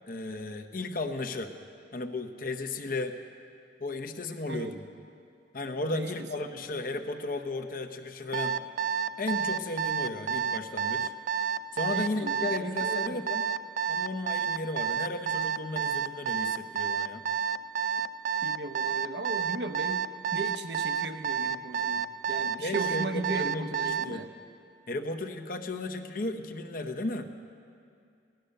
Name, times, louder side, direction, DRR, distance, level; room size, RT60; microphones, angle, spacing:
voice 1, 0.1-1.5 1.9-3.1 3.8-4.9 5.5-8.7 9.2-11.1 11.7-13.4 13.9-17.2 22.5-24.2 24.9-27.3, left 2 dB, 50° left, 5 dB, 0.9 m, -35 dB
voice 2, 4.5-4.8 5.9-6.1 11.9-13.2 18.4-20.1 20.3-24.3, right 2 dB, 70° right, 8 dB, 0.8 m, -36 dB
Alarm, 8.3-24.1, right 7 dB, 50° right, 0.4 m, -29 dB
17.0 x 11.5 x 6.6 m, 2.4 s
head